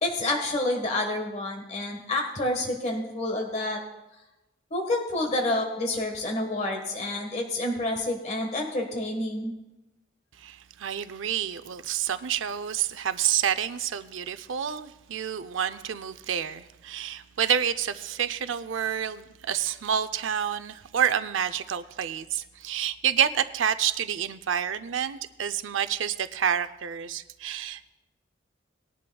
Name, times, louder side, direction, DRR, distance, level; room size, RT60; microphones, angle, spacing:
voice 1, 0.0-3.8 4.7-9.5, left 1 dB, 35° left, 2 dB, 1.4 m, -28 dB
voice 2, 10.4-27.9, right 8 dB, 75° right, 11 dB, 0.5 m, -28 dB
19.5 x 11.0 x 2.3 m, 0.98 s
head